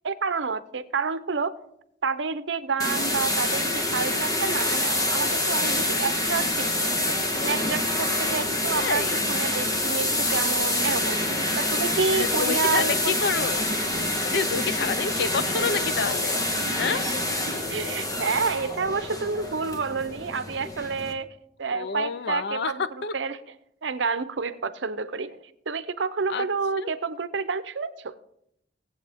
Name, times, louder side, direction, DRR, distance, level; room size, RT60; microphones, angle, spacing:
voice 1, 0.0-1.5 2.0-7.2 7.4-9.0 9.3-11.2 11.6-13.2 16.8-17.0 17.5-22.8 23.1-23.4 23.8-28.1, right 5 dB, 75° right, 0.7 m, -29 dB
sound 1, 2.8-21.1, left 1 dB, 20° left, 1.3 m, -26 dB
voice 2, 8.7-9.3 12.2-13.7 14.3-16.4 16.8-17.1 21.7-23.1 26.3-26.4 26.8-26.9, left 5 dB, 65° left, 0.6 m, -28 dB
18.5 x 8.1 x 3.5 m
head